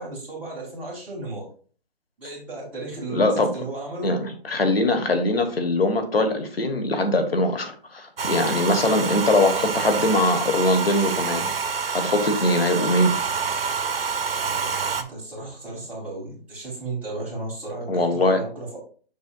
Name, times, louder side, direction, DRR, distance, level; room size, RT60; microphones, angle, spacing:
voice 1, 0.0-1.5 2.2-4.1 8.7-9.0 14.9-18.8, right 2 dB, 5° right, -8 dB, 1.5 m, -34 dB
voice 2, 3.1-3.5 4.0-11.4 11.9-13.1 17.9-18.4, left 2 dB, 70° left, 6 dB, 1.4 m, -22 dB
Domestic sounds home sounds, 8.2-15.0, right 5 dB, 65° right, 0.8 m, -27 dB
6.8 x 6.2 x 2.4 m, 0.42 s
figure-of-eight pair, 155°, 30 cm